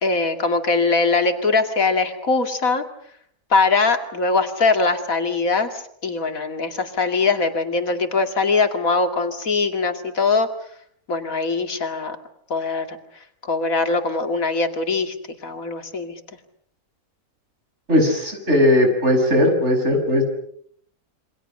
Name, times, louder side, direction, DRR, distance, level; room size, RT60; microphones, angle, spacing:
voice 1, 0.0-2.8 3.5-10.5 11.1-12.2 12.5-13.0 13.4-15.1 15.4-16.1, left 4 dB, 85° left, 6 dB, 2.8 m, -21 dB
voice 2, 17.9-20.2, left 1 dB, 55° right, 4 dB, 6.7 m, -18 dB
28.0 x 24.5 x 6.7 m, 0.66 s
omnidirectional pair, 1.4 m